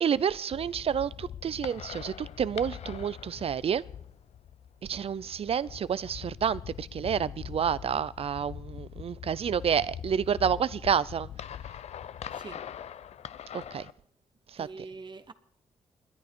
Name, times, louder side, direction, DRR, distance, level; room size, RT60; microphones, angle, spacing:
voice 1, 0.0-3.8 4.9-11.3 13.5-13.9 14.6-14.7, right 8 dB, 60° right, 0.5 m, -29 dB
sound 1, 0.5-13.9, left 9 dB, 75° left, 0.6 m, -42 dB
voice 2, 12.3-12.6 14.6-15.3, right 4 dB, 40° right, 1.1 m, -44 dB
28.0 x 10.5 x 4.5 m
cardioid pair, 75°, 11 cm